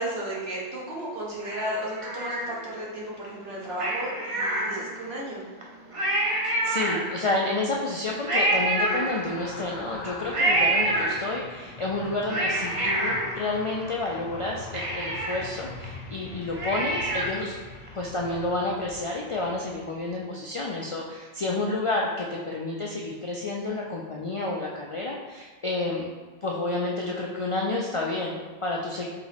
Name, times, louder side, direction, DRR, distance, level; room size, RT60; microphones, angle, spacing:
voice 1, 0.0-5.4, right 1 dB, 75° right, -4 dB, 1.3 m, -34 dB
Cat, 1.4-2.9 3.7-5.2 5.6-5.7 5.9-7.4 8.3-9.6 10.3-11.6 12.1-14.1 14.4-14.5 14.7-17.5 17.9-18.0, right 1 dB, 40° right, 0.6 m, -27 dB
voice 2, 6.4-17.6 17.9-26.1 26.4-29.1, left 2 dB, 55° left, -2 dB, 0.3 m, -30 dB
sound 1, 7.5-20.3 20.6-20.8, left 3 dB, 80° left, 0.8 m, -43 dB
3.6 x 2.9 x 4.1 m, 1.4 s
omnidirectional pair, 1.1 m